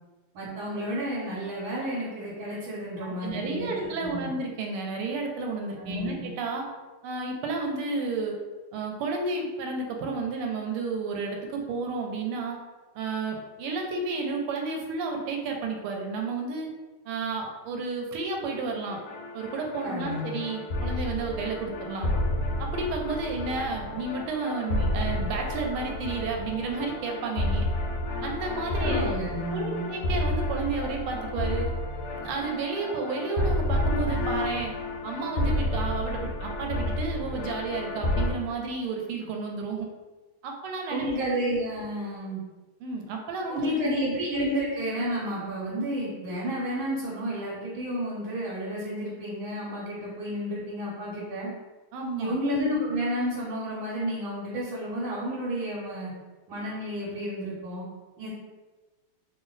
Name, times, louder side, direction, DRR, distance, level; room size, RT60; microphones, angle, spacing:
voice 1, 0.3-4.3 5.8-6.2 19.8-20.4 28.7-29.9 40.9-42.4 43.5-51.5 52.2-56.1 56.5-57.8 58.2-58.3, equal, 70° right, -7 dB, 1.6 m, -31 dB
voice 2, 3.0-6.6 7.0-8.3 8.7-12.6 12.9-16.7 17.0-19.0 19.3-22.1 22.6-27.7 28.2-29.1 29.5-31.7 32.1-34.7 35.0-39.9 40.4-41.2 42.8-44.0 51.9-52.3, right 3 dB, 85° right, 2 dB, 1.5 m, -32 dB
sound 1, 18.9-38.3, left 1 dB, 85° left, 1.5 m, -30 dB
3.6 x 2.0 x 3.8 m, 1.3 s
omnidirectional pair, 2.4 m